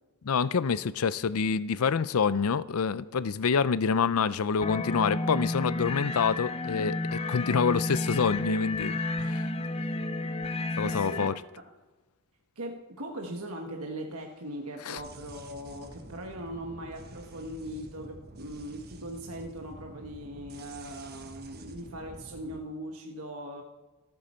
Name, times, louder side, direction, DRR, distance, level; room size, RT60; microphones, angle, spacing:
voice 1, 0.2-9.5 10.8-11.3 14.9-15.0, left 5 dB, 75° left, 0.5 m, -27 dB
sound 1, 4.6-11.3, left 2 dB, 30° left, 0.6 m, -31 dB
voice 2, 10.8-11.3 12.6-23.6, right 1 dB, 80° right, 1.4 m, -40 dB
sound 2, 15.0-22.6, right 1 dB, 45° right, 1.3 m, -48 dB
26.5 x 8.9 x 4.4 m
head